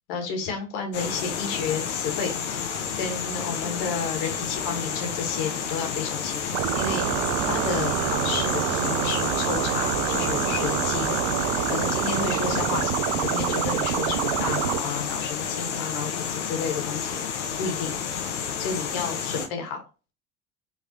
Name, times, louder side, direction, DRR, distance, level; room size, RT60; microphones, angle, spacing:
voice 1, 0.1-11.2 11.7-18.0 18.6-19.8, left 5 dB, 50° left, 3 dB, 1.7 m, -32 dB
sound 1, 0.9-19.5, left 7 dB, 70° left, 1.0 m, -30 dB
sound 2, 6.5-14.8, right 12 dB, 45° right, 0.5 m, -26 dB
5.1 x 3.2 x 2.9 m, 0.32 s
figure-of-eight pair, 70°, 38 cm